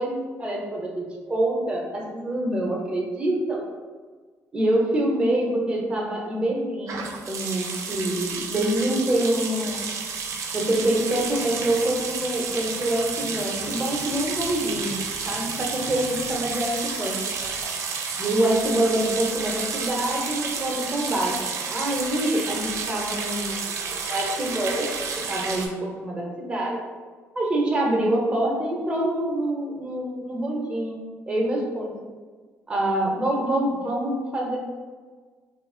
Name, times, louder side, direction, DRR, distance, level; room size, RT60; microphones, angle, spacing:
voice 1, 0.0-3.7 4.5-9.8 10.5-15.0 15.3-17.2 18.2-21.4 21.7-23.8 24.1-24.9 25.3-26.8 27.3-32.0 32.7-34.6, right 1 dB, 15° right, -2 dB, 0.7 m, -26 dB
sound 1, 6.9-25.7, right 5 dB, 60° right, 0.4 m, -31 dB
2.8 x 2.4 x 3.7 m, 1.5 s
cardioid pair, 130°, 6 cm